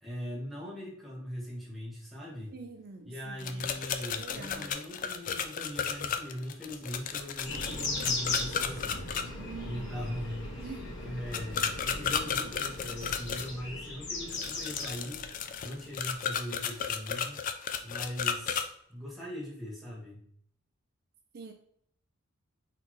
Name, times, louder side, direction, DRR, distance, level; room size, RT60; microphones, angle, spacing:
voice 1, 0.0-2.5 3.1-9.1 9.6-10.6 11.0-15.2 15.6-17.4 17.8-20.2, equal, ahead, -5 dB, 1.4 m, -40 dB
voice 2, 2.5-3.7 4.2-4.7 9.4-9.9 10.6-10.9 21.3-21.5, right 4 dB, 50° right, 5 dB, 0.4 m, -45 dB
sound 1, 3.4-9.2 11.3-13.5 14.3-18.6, left 7 dB, 40° left, 0.3 m, -33 dB
sound 2, 7.4-15.9, left 2 dB, 55° left, 1.6 m, -38 dB
4.2 x 4.0 x 3.0 m, 0.66 s
head